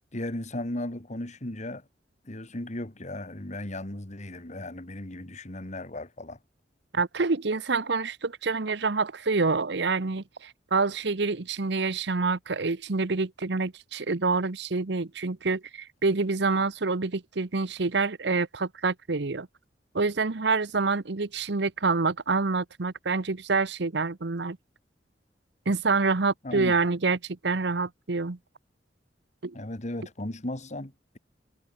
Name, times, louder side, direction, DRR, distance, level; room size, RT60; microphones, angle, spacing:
voice 1, 0.1-1.8 2.2-6.4 26.4-26.7 29.5-31.2, left 1 dB, 40° left, 2.5 m, -36 dB
voice 2, 6.9-19.5 19.9-24.6 25.7-28.4 29.4-29.5, right 4 dB, 70° right, 1.0 m, -27 dB
head